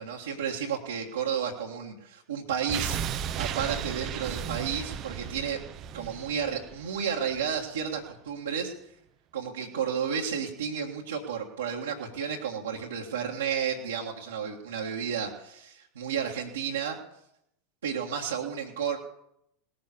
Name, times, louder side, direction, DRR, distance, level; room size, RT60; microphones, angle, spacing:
voice 1, 0.0-3.0 3.4-5.6 5.9-8.7 9.3-17.0 17.8-19.0, right 7 dB, 75° right, -4 dB, 1.8 m, -32 dB
sound 1, 2.7-7.6 7.9-8.0, right 9 dB, 40° right, 0.7 m, -35 dB
18.5 x 7.6 x 8.5 m, 0.78 s
figure-of-eight pair, 90°, 0 cm